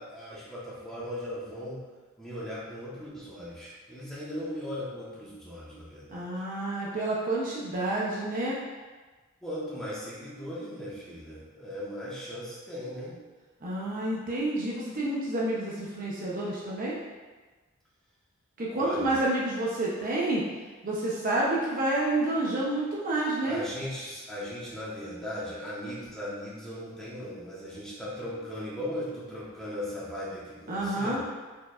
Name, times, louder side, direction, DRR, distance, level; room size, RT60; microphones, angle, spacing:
voice 1, 0.0-1.8 2.2-6.3 9.4-13.2 18.7-19.2 23.5-31.2, left 1 dB, 5° left, -9 dB, 1.2 m, -38 dB
voice 2, 6.1-8.6 13.6-17.0 18.6-20.4 20.8-23.6 30.7-31.2, right 2 dB, 40° right, -5 dB, 0.7 m, -29 dB
4.6 x 4.5 x 2.5 m, 1.3 s
head